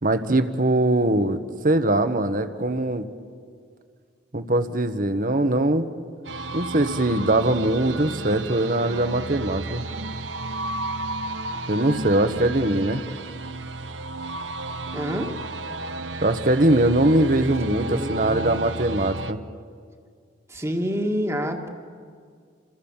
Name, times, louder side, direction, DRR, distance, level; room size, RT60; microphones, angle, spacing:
voice 1, 0.0-3.1 4.3-5.9 6.5-9.8 11.7-13.0 16.2-19.4, right 1 dB, 45° right, 10 dB, 1.4 m, -21 dB
sound 1, 6.2-19.3, right 2 dB, 65° right, 0.9 m, -33 dB
voice 2, 14.9-15.3 17.8-18.6 20.5-21.7, equal, 15° right, 2 dB, 1.9 m, -27 dB
29.0 x 27.5 x 7.4 m, 2.1 s
head